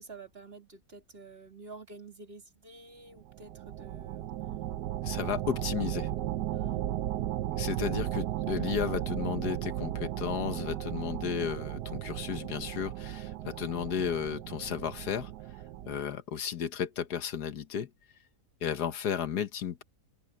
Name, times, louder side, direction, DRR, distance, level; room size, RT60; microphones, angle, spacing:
voice 1, 0.0-4.3 6.5-6.9, right 3 dB, 35° right, 3.0 m, -49 dB
sound 1, 3.2-16.0, right 13 dB, 80° right, 1.3 m, -35 dB
voice 2, 5.0-6.1 7.6-15.3 15.9-17.9 18.6-19.8, left 8 dB, 70° left, 1.6 m, -33 dB
open air
omnidirectional pair, 1.8 m